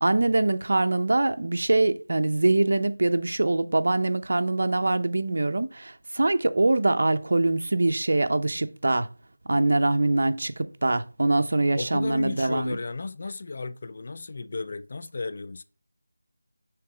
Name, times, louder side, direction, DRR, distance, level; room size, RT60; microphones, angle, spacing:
voice 1, 0.0-9.1 9.5-12.8, right 2 dB, 60° right, 0.6 m, -23 dB
voice 2, 11.8-15.6, left 3 dB, 45° left, 0.4 m, -34 dB
6.7 x 3.1 x 4.9 m
figure-of-eight pair, 170°, 0 cm